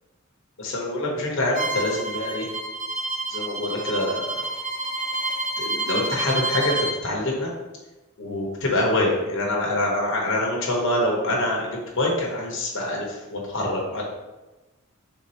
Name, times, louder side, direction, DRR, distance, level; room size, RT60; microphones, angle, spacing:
voice 1, 0.6-2.5 3.3-4.3 5.6-6.8 7.0-7.5 8.2-13.1 13.3-14.0, left 1 dB, 65° left, -2 dB, 0.9 m, -25 dB
Bowed string instrument, 1.5-7.0, right 2 dB, 40° right, 0.6 m, -29 dB
3.6 x 2.7 x 4.3 m, 1.1 s
head